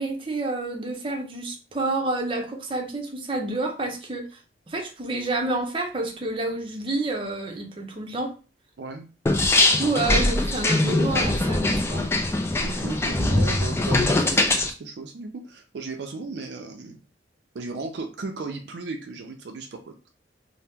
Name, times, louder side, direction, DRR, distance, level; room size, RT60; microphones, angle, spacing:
voice 1, 0.0-4.3 4.7-8.3 9.8-12.0, right 2 dB, 30° right, 1 dB, 0.6 m, -28 dB
voice 2, 8.8-9.1 12.6-17.0 17.5-20.1, right 3 dB, 70° right, 5 dB, 0.4 m, -36 dB
sound 1, 9.3-14.7, left 2 dB, 15° left, 0.3 m, -22 dB
2.7 x 2.0 x 3.4 m, 0.32 s
head